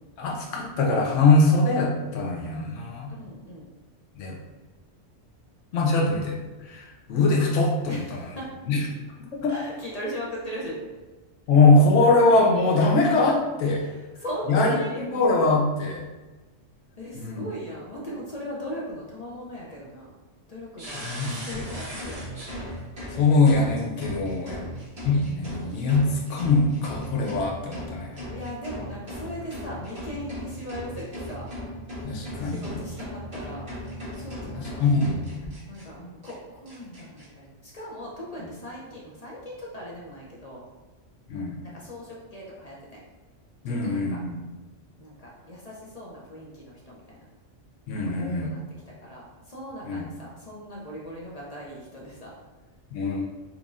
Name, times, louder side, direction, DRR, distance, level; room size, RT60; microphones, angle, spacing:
voice 1, 0.2-3.1 4.2-4.4 5.7-6.4 6.6-8.2 8.7-8.8 9.4-9.5 11.5-13.8 14.5-16.0 17.2-17.4 21.0-21.3 23.1-24.6 25.0-28.3 32.0-32.7 34.5-35.5 41.3-41.6 43.6-44.3 47.9-48.5 49.9-50.0 52.9-53.2, left 3 dB, 75° left, -2 dB, 1.0 m, -22 dB
voice 2, 3.1-3.7 7.9-8.5 9.5-10.8 12.0-12.1 13.8-15.0 17.0-20.1 20.5-21.0 21.3-22.5 24.4-24.8 28.3-31.5 32.4-33.7 34.2-34.9 35.7-40.6 41.6-43.0 43.6-44.2 45.0-47.2 48.0-48.6 48.9-52.3, equal, 45° left, -5 dB, 0.6 m, -38 dB
sound 1, 20.8-35.8 36.2-36.3 36.7-37.2, equal, 55° right, 1.7 m, -37 dB
4.6 x 2.6 x 2.4 m, 1.2 s
omnidirectional pair, 1.3 m